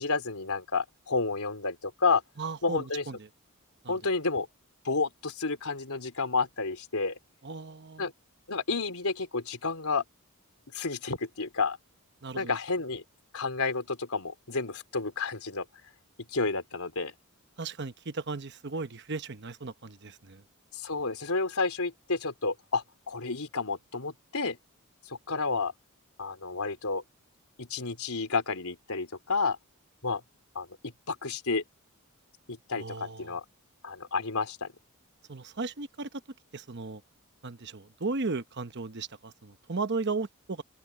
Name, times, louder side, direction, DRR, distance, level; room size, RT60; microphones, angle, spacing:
voice 1, 0.0-2.2 2.6-3.0 3.9-4.5 4.8-7.1 8.0-8.1 8.5-10.0 10.7-11.8 12.4-13.0 13.3-15.7 16.3-17.1 20.7-24.6 25.1-25.7 26.2-27.0 27.6-29.6 30.0-30.2 30.6-31.6 32.5-33.4 33.8-34.7, left 4 dB, 80° left, 3.7 m, -30 dB
voice 2, 2.4-3.3 3.8-4.0 7.4-8.1 12.2-12.6 17.6-20.4 32.8-33.4 35.3-36.1 36.5-37.0 37.4-40.6, right 3 dB, 50° right, 1.0 m, -36 dB
open air
head